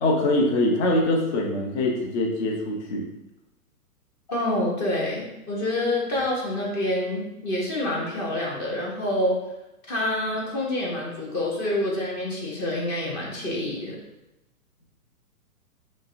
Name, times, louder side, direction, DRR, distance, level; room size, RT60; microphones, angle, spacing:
voice 1, 0.0-3.1, left 1 dB, 45° left, -1 dB, 0.8 m, -23 dB
voice 2, 4.3-9.4 9.9-14.0, left 1 dB, 20° left, -3 dB, 0.5 m, -27 dB
5.1 x 2.1 x 2.5 m, 0.95 s
hypercardioid pair, 135°, 45 cm